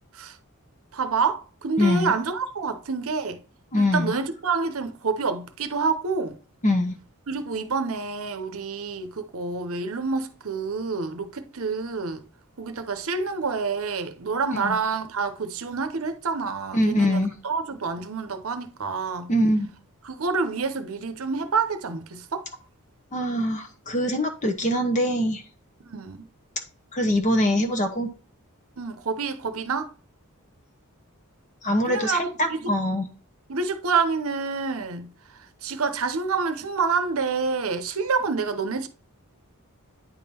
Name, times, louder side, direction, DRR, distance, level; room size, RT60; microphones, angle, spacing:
voice 1, 0.9-3.4 3.8-6.4 7.3-12.2 12.6-19.3 20.0-22.5 25.8-26.3 28.8-29.9 31.8-32.7 33.5-35.1 35.6-38.9, right 4 dB, 65° right, 0.7 m, -28 dB
voice 2, 1.8-2.1 3.7-4.1 6.6-6.9 14.6-14.8 16.7-17.3 19.3-19.7 23.1-25.4 26.9-28.1 31.6-33.0, left 1 dB, 35° left, 0.8 m, -23 dB
9.4 x 3.7 x 4.3 m
head